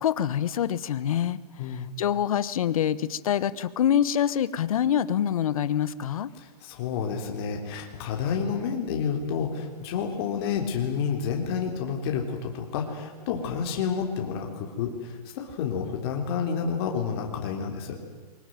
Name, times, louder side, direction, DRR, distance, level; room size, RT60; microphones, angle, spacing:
voice 1, 0.0-1.4 1.7-6.3, left 10 dB, 60° left, 17 dB, 1.2 m, -25 dB
voice 2, 6.4-18.0, left 6 dB, 40° left, 2 dB, 3.7 m, -30 dB
24.0 x 20.0 x 9.2 m, 1.4 s
hypercardioid pair, 150°, 21 cm